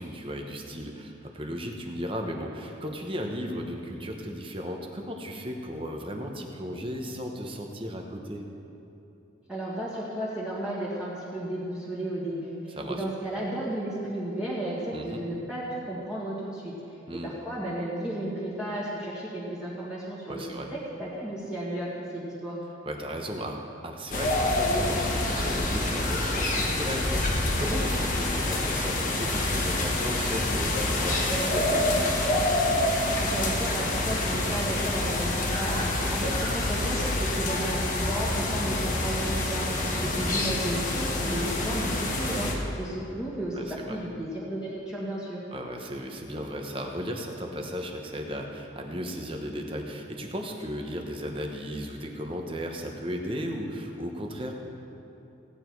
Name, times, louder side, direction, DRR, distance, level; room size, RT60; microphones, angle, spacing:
voice 1, 0.0-8.4 12.8-13.0 14.9-15.2 17.1-17.3 20.3-20.7 22.8-32.1 36.0-36.3 39.9-40.2 43.5-44.0 45.5-54.5, equal, 25° right, 2 dB, 1.0 m, -35 dB
voice 2, 9.5-16.7 17.2-22.6 33.2-39.7 40.0-42.5 42.8-45.4, right 1 dB, 5° right, -9 dB, 1.9 m, -33 dB
sound 1, 24.1-42.5, left 2 dB, 40° left, 1.5 m, -27 dB
17.0 x 9.1 x 4.7 m, 2.8 s
head